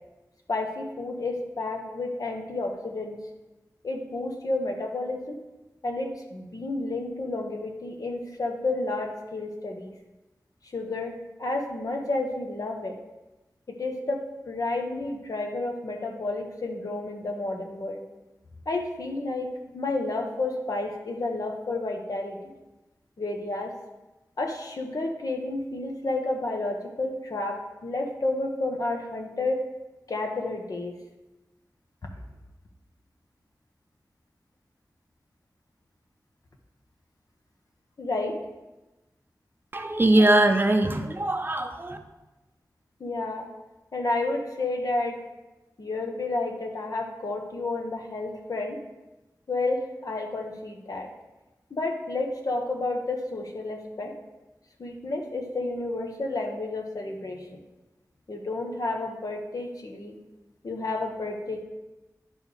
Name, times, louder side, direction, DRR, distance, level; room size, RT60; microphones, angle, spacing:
voice 1, 0.5-3.2 3.8-5.4 5.8-9.9 10.7-12.9 13.7-14.2 14.5-18.0 18.6-22.5 23.2-23.7 24.4-29.6 30.1-30.9 38.0-38.3 43.0-43.5 43.9-45.2 45.8-48.8 49.5-51.1 51.7-54.1 54.8-57.4 58.3-60.1 60.6-61.6, left 2 dB, 65° left, 2 dB, 1.4 m, -31 dB
voice 2, 39.7-42.0, right 1 dB, 30° right, 5 dB, 0.6 m, -21 dB
10.5 x 4.6 x 5.2 m, 1.1 s
wide cardioid pair, 90°, 7 cm